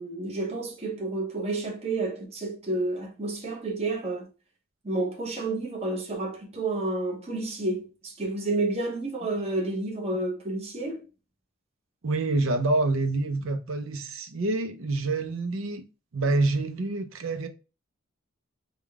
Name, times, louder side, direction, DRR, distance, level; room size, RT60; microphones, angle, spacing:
voice 1, 0.0-4.3 4.8-11.0, right 2 dB, 30° right, 0.9 m, -30 dB
voice 2, 12.0-15.9 16.1-17.5, right 2 dB, 85° right, 0.6 m, -27 dB
3.6 x 2.3 x 3.4 m
head